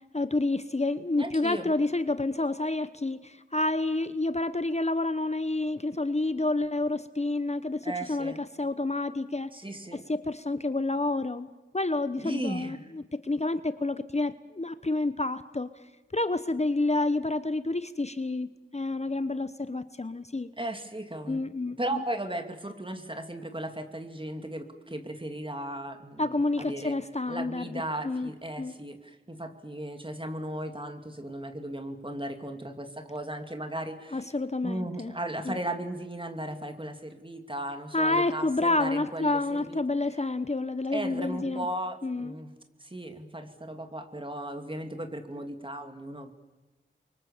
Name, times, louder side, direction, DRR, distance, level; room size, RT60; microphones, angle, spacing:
voice 1, 0.1-9.5 9.9-11.5 11.7-15.7 16.1-20.5 21.3-22.0 26.2-28.3 28.6-28.7 34.1-35.1 35.4-35.6 37.9-41.7 42.0-42.3, left 2 dB, 35° left, 12 dB, 0.9 m, -29 dB
voice 2, 1.2-1.7 7.8-8.4 9.5-10.0 12.2-12.9 20.6-21.4 21.8-26.9 27.3-34.3 34.6-39.4 39.7-39.8 40.9-42.5 42.8-46.3, right 1 dB, 25° right, 6 dB, 2.7 m, -36 dB
29.5 x 24.0 x 7.3 m, 1.1 s
wide cardioid pair, 55°, 20 cm